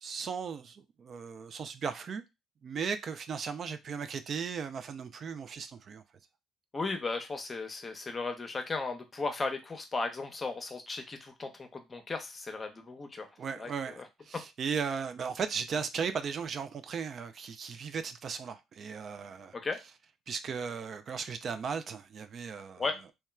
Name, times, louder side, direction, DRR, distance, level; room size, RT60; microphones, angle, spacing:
voice 1, 0.0-2.2 2.6-6.0 13.4-19.6 20.3-22.9, right 6 dB, 50° right, 0.3 m, -36 dB
voice 2, 6.7-13.3 13.6-13.7 19.5-19.8 22.8-22.9, left 3 dB, 30° left, 0.7 m, -35 dB
2.9 x 2.2 x 2.2 m
supercardioid pair, 70°, 0 cm